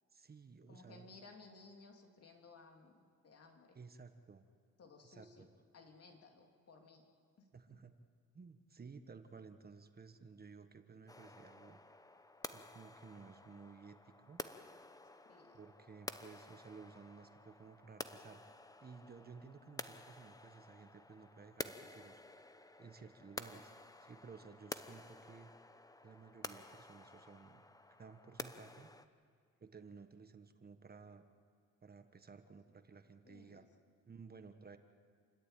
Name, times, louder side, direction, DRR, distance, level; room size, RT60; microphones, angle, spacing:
voice 1, 0.1-1.1 3.7-4.4 5.0-5.5 7.5-7.9 8.3-11.8 12.5-14.4 15.5-18.5 18.8-22.5 22.8-23.7 24.0-25.5 26.0-27.7 28.0-28.9 29.6-31.2 31.8-33.7 34.1-34.8, right 5 dB, 30° right, 8 dB, 1.3 m, -56 dB
voice 2, 0.7-3.8 4.8-5.5 5.7-7.1 7.4-7.5 15.2-15.6 33.2-33.6, left 3 dB, 55° left, 3 dB, 3.0 m, -59 dB
sound 1, 11.1-29.1, left 2 dB, 10° left, 0.9 m, -51 dB
29.0 x 13.5 x 9.1 m, 2.1 s
cardioid pair, 90°, 30 cm